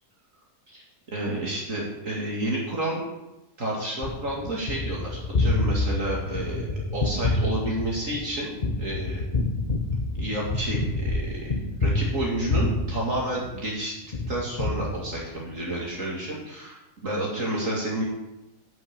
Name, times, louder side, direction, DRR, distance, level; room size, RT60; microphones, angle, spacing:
voice 1, 1.1-3.0 3.6-8.5 8.8-9.2 10.2-11.5 11.8-14.0 14.3-18.0, right 1 dB, 55° right, -4 dB, 2.6 m, -30 dB
Gunshot gunfire, 4.0-13.7 14.1-15.5, left 2 dB, 35° left, 0.9 m, -28 dB
11.0 x 5.8 x 8.7 m, 0.97 s
omnidirectional pair, 1.7 m